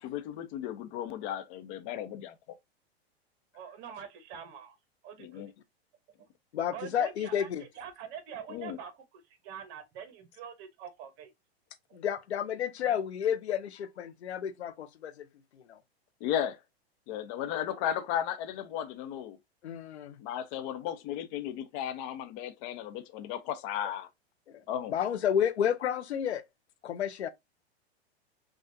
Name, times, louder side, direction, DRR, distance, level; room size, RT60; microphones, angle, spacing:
voice 1, 0.0-2.4 5.2-5.5 8.5-8.8 16.2-16.6 17.1-19.4 20.2-24.1 24.7-24.9, left 10 dB, 50° left, 0.9 m, -35 dB
voice 2, 3.5-4.8 5.0-5.4 6.7-7.5 7.8-11.3, right 8 dB, 45° right, 1.1 m, -44 dB
voice 3, 6.5-7.6 11.9-15.3 15.5-15.8 19.6-20.1 24.9-26.4 26.8-27.3, left 9 dB, 90° left, 0.7 m, -31 dB
5.9 x 2.4 x 2.6 m
hypercardioid pair, 115°, 32 cm